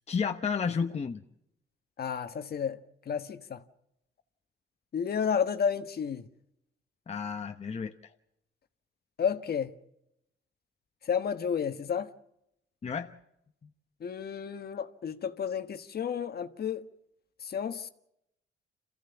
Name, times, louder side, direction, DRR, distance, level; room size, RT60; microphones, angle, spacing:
voice 1, 0.1-1.2 7.1-8.1 12.8-13.1, left 6 dB, 35° left, 1.0 m, -32 dB
voice 2, 2.0-2.8 3.1-3.6 4.9-6.2 9.2-9.7 11.1-12.1 14.0-16.9 17.4-17.9, left 7 dB, 50° left, 1.4 m, -31 dB
27.0 x 15.0 x 7.1 m
cardioid pair, 90°, 20 cm